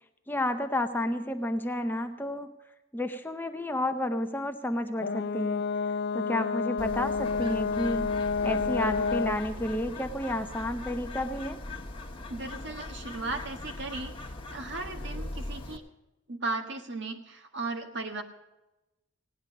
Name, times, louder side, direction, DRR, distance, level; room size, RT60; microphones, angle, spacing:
voice 1, 0.3-2.5 2.9-8.2 8.4-11.6, left 1 dB, 10° left, 6 dB, 0.7 m, -31 dB
Brass instrument, 5.0-9.5, left 5 dB, 55° left, 0.4 m, -29 dB
Bird, 6.8-15.8, left 2 dB, 25° left, 1.3 m, -40 dB
voice 2, 12.3-15.8 16.3-18.2, right 3 dB, 60° right, 4 dB, 1.6 m, -36 dB
17.0 x 10.0 x 6.4 m, 0.99 s
head